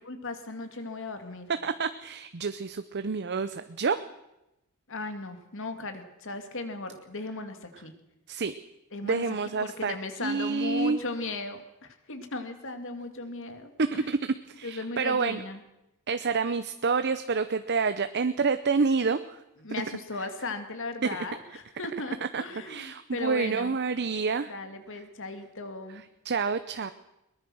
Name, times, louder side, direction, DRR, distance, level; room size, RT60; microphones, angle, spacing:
voice 1, 0.1-1.5 4.9-7.9 8.9-9.2 9.6-14.1 14.6-15.6 19.6-23.8 24.5-26.0, left 3 dB, 60° left, 7 dB, 2.4 m, -37 dB
voice 2, 1.6-4.0 8.3-8.5 9.0-10.0 10.2-11.0 13.8-15.4 16.1-19.4 22.3-24.5 25.9-26.9, right 4 dB, 50° right, 11 dB, 0.7 m, -28 dB
21.5 x 20.0 x 6.3 m, 0.92 s
head